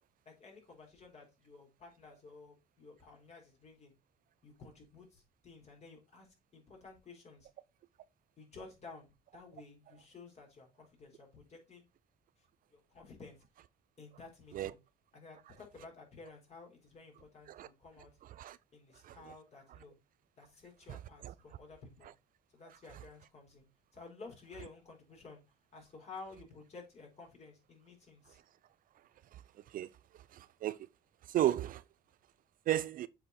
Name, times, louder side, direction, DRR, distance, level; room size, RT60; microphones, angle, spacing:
voice 1, 0.3-3.9 4.4-7.5 8.4-11.9 12.7-13.4 14.0-14.8 15.1-18.1 18.7-19.9 20.4-22.1 22.5-23.7 23.9-25.4 25.7-28.4, left 4 dB, 40° left, 4.1 m, -53 dB
voice 2, 30.3-30.8 31.3-31.8 32.7-33.1, right 13 dB, 55° right, 0.5 m, -33 dB
7.7 x 4.3 x 4.2 m
cardioid pair, 110°, 17 cm